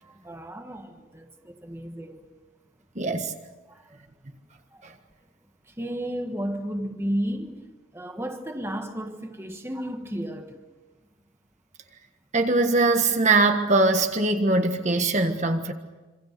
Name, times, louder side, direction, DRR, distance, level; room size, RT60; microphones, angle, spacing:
voice 1, 0.0-2.3 3.7-4.1 4.7-4.8 5.6-7.6 7.9-10.6, equal, 10° right, 1.5 m, -33 dB
voice 2, 2.9-3.3 4.8-4.9 12.3-15.7, right 3 dB, 35° right, 1.5 m, -22 dB
27.0 x 26.0 x 6.8 m
head